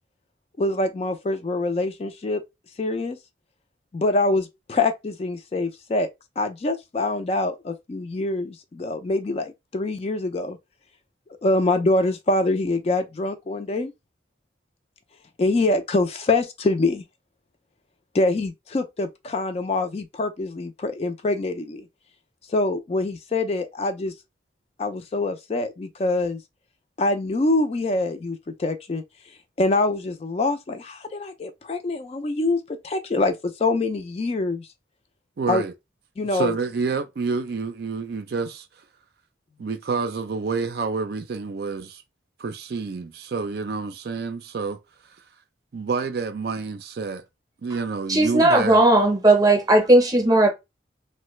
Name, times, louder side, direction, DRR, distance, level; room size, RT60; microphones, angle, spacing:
voice 1, 0.6-2.4 2.8-3.2 3.9-6.1 6.4-10.6 11.4-13.9 15.4-17.0 18.1-21.9 22.5-24.1 24.8-26.4 27.0-29.0 29.6-34.7 35.5-35.6 36.2-36.5, left 2 dB, 30° left, 0.3 m, -25 dB
voice 2, 35.4-35.7 36.3-38.7 39.6-42.0 42.4-44.8 45.7-47.2 47.6-48.8, right 4 dB, 55° right, 0.4 m, -28 dB
voice 3, 48.1-50.5, right 1 dB, 20° right, 0.7 m, -16 dB
3.1 x 2.1 x 3.0 m
head